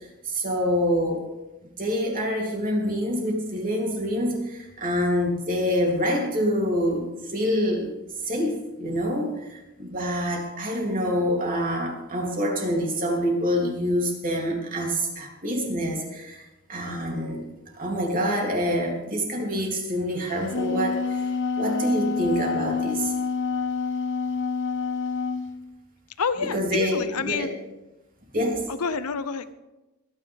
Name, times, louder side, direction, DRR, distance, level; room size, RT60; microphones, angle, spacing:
voice 1, 0.2-1.2 1.6-7.9 8.3-16.4 16.7-17.4 17.7-21.2 21.6-23.1 26.4-27.5 28.3-28.6, equal, 40° right, -1 dB, 3.2 m, -26 dB
Wind instrument woodwind instrument, 20.3-25.5, left 5 dB, 55° left, 0.9 m, -27 dB
voice 2, 26.2-27.5 28.7-29.5, left 5 dB, 85° left, 13 dB, 0.8 m, -28 dB
24.0 x 9.9 x 3.6 m, 1.0 s
head